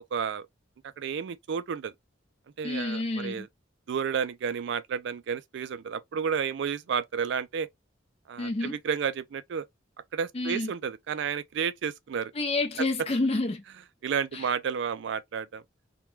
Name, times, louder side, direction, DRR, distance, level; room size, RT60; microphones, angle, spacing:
voice 1, 0.1-0.5 1.0-1.9 2.6-3.5 3.9-7.7 8.3-9.7 10.1-12.3 14.0-15.6, right 7 dB, 65° right, 0.3 m, -31 dB
voice 2, 2.6-3.5 8.4-8.8 10.3-10.7 12.3-13.6 14.3-14.5, left 2 dB, 30° left, 0.5 m, -29 dB
2.2 x 2.2 x 3.0 m
head